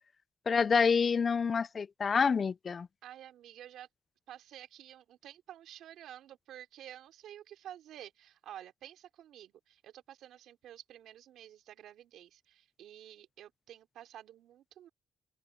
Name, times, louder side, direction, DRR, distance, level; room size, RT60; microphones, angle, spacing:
voice 1, 0.5-2.9, left 5 dB, 40° left, 0.4 m, -27 dB
voice 2, 3.0-3.9 4.3-14.9, right 11 dB, 80° right, 4.0 m, -51 dB
open air
cardioid pair, 90°, 0 cm